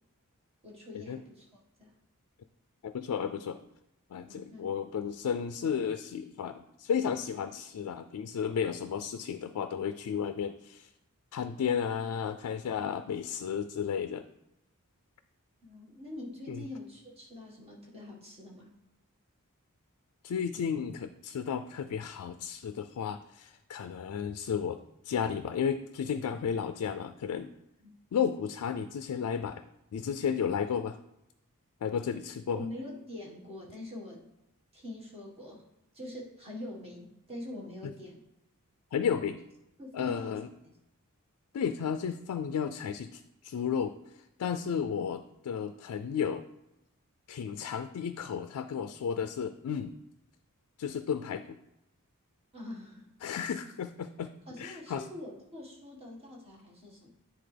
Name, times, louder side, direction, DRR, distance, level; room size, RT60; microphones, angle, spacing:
voice 1, 0.6-1.5 1.8-1.9 4.2-4.7 15.6-18.7 27.8-27.9 32.5-34.3 34.7-35.6 35.9-38.2 39.8-40.7 52.5-53.1 54.5-57.1, left 1 dB, 25° right, -3 dB, 1.6 m, -44 dB
voice 2, 2.8-3.6 4.1-10.9 11.3-14.2 16.5-16.6 20.2-24.8 25.0-27.5 28.1-29.6 29.9-31.0 31.8-32.7 37.8-37.9 38.9-39.4 39.9-40.5 41.5-44.0 44.4-46.4 47.3-49.9 50.8-51.6 53.2-55.0, left 7 dB, 80° left, 9 dB, 0.3 m, -33 dB
10.0 x 3.8 x 3.3 m, 0.89 s
head